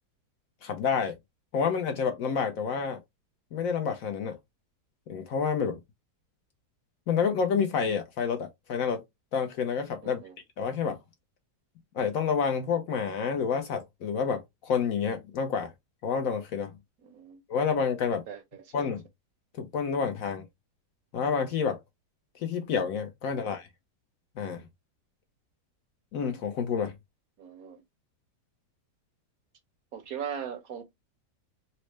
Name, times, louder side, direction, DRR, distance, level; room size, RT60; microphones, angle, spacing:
voice 1, 0.6-1.2 1.5-3.0 3.5-4.4 5.1-5.8 7.1-9.0 9.3-10.2 10.6-11.0 11.9-15.7 16.0-16.7 17.5-18.2 18.7-19.0 19.6-20.4 21.1-21.8 22.3-23.7 24.4-24.6 26.1-26.9, left 6 dB, 70° left, 0.9 m, -29 dB
voice 2, 10.0-10.4 17.0-17.4 18.3-18.9 23.3-23.5 27.4-27.8 29.9-30.8, right 8 dB, 70° right, 1.0 m, -39 dB
4.2 x 2.0 x 3.1 m
omnidirectional pair, 1.8 m